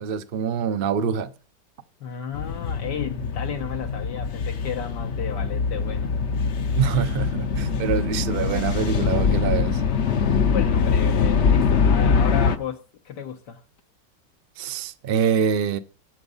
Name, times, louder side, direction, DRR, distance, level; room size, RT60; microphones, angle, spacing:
voice 1, 0.0-1.3 6.8-9.8 14.6-15.8, right 7 dB, 55° right, 0.6 m, -25 dB
voice 2, 2.0-6.1 10.3-13.6, left 8 dB, 80° left, 1.6 m, -33 dB
sound 1, 2.3-12.6, left 5 dB, 55° left, 0.9 m, -23 dB
11.0 x 7.9 x 5.5 m
omnidirectional pair, 1.8 m